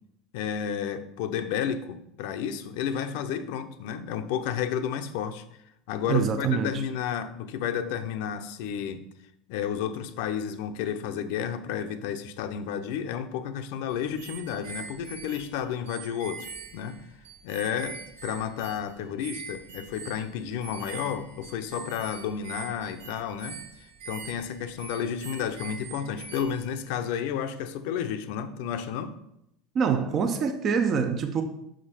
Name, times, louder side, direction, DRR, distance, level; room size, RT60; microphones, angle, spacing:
voice 1, 0.3-5.4 5.9-9.0 9.5-16.5 16.7-17.0 17.4-23.6 24.1-29.1, left 8 dB, 70° left, 10 dB, 0.6 m, -31 dB
voice 2, 6.1-6.8 29.7-31.4, right 6 dB, 30° right, 6 dB, 0.5 m, -25 dB
sound 1, 13.9-26.8, right 5 dB, 75° right, 1.6 m, -43 dB
5.9 x 5.1 x 5.7 m, 0.79 s
cardioid pair, 155°, 0 cm